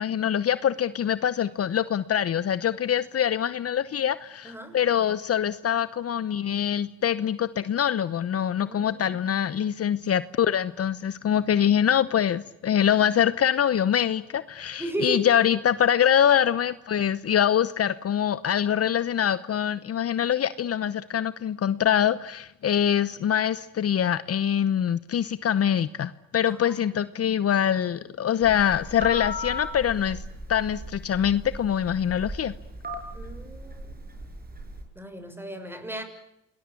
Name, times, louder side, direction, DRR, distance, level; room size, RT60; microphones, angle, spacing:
voice 1, 0.0-30.2 30.5-32.5, left 9 dB, 50° left, 15 dB, 1.0 m, -24 dB
voice 2, 4.4-4.8 8.6-9.2 14.8-15.3 26.5-27.0 33.1-34.0 34.9-36.0, right 1 dB, 5° right, 8 dB, 6.5 m, -35 dB
Telephone, 28.4-34.8, left 1 dB, 30° right, 6.2 m, -37 dB
28.0 x 20.5 x 8.5 m, 0.86 s
cardioid pair, 90°, 30 cm